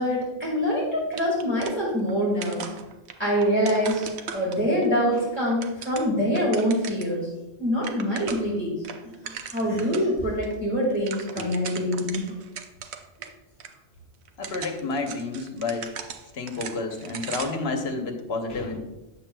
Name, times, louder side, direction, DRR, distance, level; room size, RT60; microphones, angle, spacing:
voice 1, 0.0-2.7 3.2-7.3 7.6-8.7 9.0-12.3, equal, 10° right, -7 dB, 1.6 m, -25 dB
sound 1, 1.1-2.2 2.4-4.9 5.4-7.2 7.5-7.6 7.8-8.6 8.8-10.1 10.4-10.5 10.8-13.3 13.6-13.7 14.3-17.7, right 7 dB, 75° right, 0.9 m, -38 dB
voice 2, 14.4-15.9 16.3-18.8, left 3 dB, 70° left, 4 dB, 1.2 m, -30 dB
8.7 x 7.4 x 2.2 m, 1.0 s
omnidirectional pair, 1.1 m